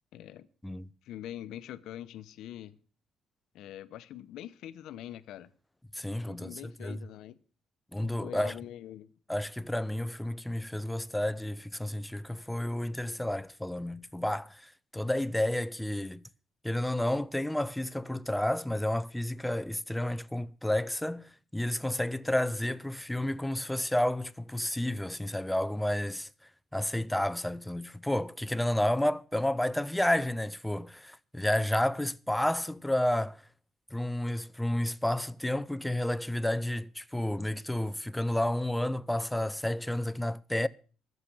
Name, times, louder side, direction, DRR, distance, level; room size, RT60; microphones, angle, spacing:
voice 1, 0.1-0.5 1.0-2.8 3.5-5.5 6.3-7.4 8.0-9.1, left 12 dB, 80° left, 0.9 m, -44 dB
voice 2, 5.9-7.0 7.9-8.6 9.3-16.2 16.6-26.3 26.7-33.4 33.9-40.7, left 1 dB, 5° left, 0.6 m, -31 dB
14.5 x 6.8 x 8.5 m
cardioid pair, 125°, 0 cm